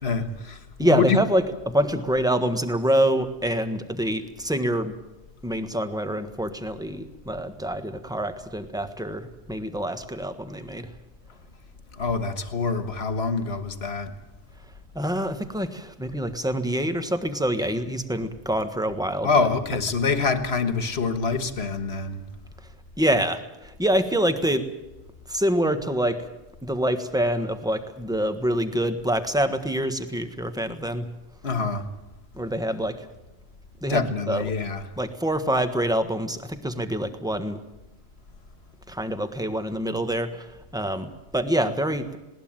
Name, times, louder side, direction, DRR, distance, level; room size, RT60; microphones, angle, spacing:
voice 1, 0.0-1.3 12.0-14.1 19.2-22.2 31.4-31.9 33.9-34.9, left 4 dB, 65° left, 1.7 m, -25 dB
voice 2, 0.8-4.9 5.4-10.9 14.9-19.5 23.0-24.7 25.3-26.3 26.6-31.1 32.3-33.1 33.8-34.5 35.0-37.6 38.9-42.2, right 1 dB, 5° right, 1.4 m, -26 dB
20.0 x 18.5 x 8.9 m
omnidirectional pair, 1.2 m